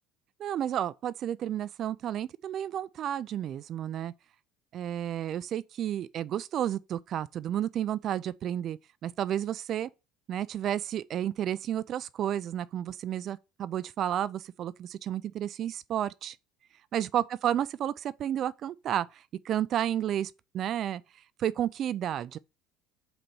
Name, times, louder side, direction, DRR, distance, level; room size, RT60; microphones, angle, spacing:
voice 1, 0.4-4.1 4.7-9.9 10.3-16.4 16.9-21.0 21.4-22.4, right 10 dB, 45° right, 0.3 m, -31 dB
4.4 x 4.0 x 5.3 m
cardioid pair, 135°, 0 cm